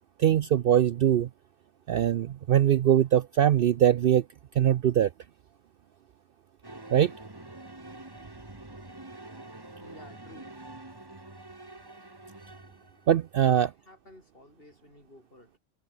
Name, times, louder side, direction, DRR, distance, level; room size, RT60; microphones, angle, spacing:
voice 1, 0.2-1.3 1.9-4.2 4.6-5.1 6.9-7.1 13.1-13.7, right 10 dB, 60° right, 0.6 m, -22 dB
sound 1, 6.6-13.2, right 2 dB, 20° right, 1.8 m, -46 dB
voice 2, 9.8-10.5 13.4-15.6, left 1 dB, 50° left, 6.6 m, -53 dB
omnidirectional pair, 1.2 m